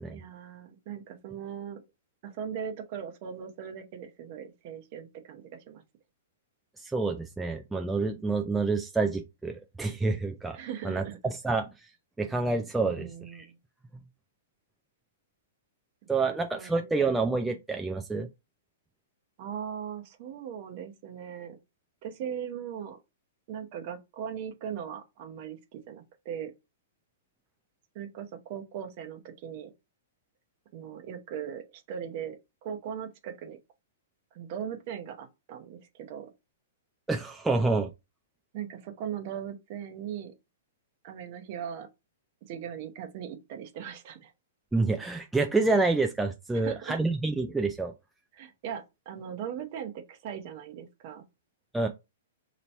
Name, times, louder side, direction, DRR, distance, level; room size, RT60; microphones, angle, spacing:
voice 1, 0.1-1.8 2.2-5.8 10.5-11.2 12.8-13.6 16.2-16.9 19.4-21.6 22.0-23.0 23.5-26.5 27.9-29.7 30.7-32.4 32.6-33.6 34.3-36.3 38.5-40.3 41.0-41.9 42.5-44.3 46.5-47.0 48.3-51.2, right 8 dB, 45° right, 0.8 m, -39 dB
voice 2, 6.8-10.6 10.8-11.7 12.2-13.5 13.9-14.0 16.1-18.3 37.1-37.9 44.7-47.9 51.7-51.9, right 3 dB, 5° right, 0.3 m, -28 dB
2.9 x 2.8 x 4.3 m
hypercardioid pair, 145°, 0 cm